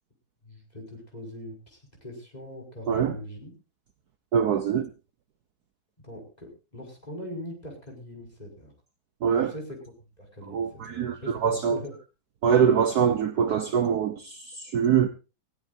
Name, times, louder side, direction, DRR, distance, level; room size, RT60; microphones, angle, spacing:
voice 1, 0.4-3.5 6.0-8.7 9.4-9.8 10.2-11.9, left 1 dB, 20° left, 5.5 m, -41 dB
voice 2, 4.3-4.9 9.2-9.5 10.5-11.8 12.4-15.1, right 7 dB, 60° right, 1.3 m, -24 dB
20.0 x 16.0 x 2.6 m
omnidirectional pair, 2.1 m